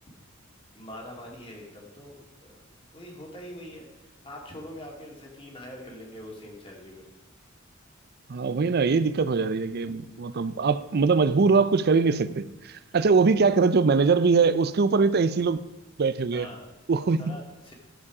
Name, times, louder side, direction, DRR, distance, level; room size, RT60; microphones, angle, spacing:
voice 1, 0.7-2.7 2.9-7.1 16.3-16.7 17.2-17.7, left 1 dB, 25° left, 2.3 m, -43 dB
voice 2, 8.3-15.6 16.0-16.5 16.9-17.4, right 4 dB, 50° right, 0.5 m, -22 dB
11.5 x 7.3 x 4.8 m
head